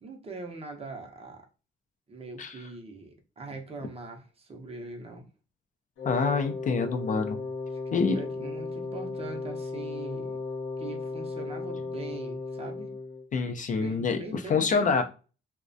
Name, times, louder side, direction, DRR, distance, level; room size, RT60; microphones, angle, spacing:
voice 1, 0.0-1.4 2.1-5.2 7.9-10.4 10.8-12.9 13.8-15.0, right 3 dB, 30° right, 3 dB, 0.6 m, -41 dB
Wind instrument woodwind instrument, 6.0-13.3, left 3 dB, 70° left, 0.7 m, -35 dB
voice 2, 6.0-7.4 7.9-8.2 13.3-15.0, left 5 dB, 40° left, 5 dB, 0.4 m, -26 dB
2.3 x 2.1 x 2.5 m, 0.34 s
cardioid pair, 90°, 20 cm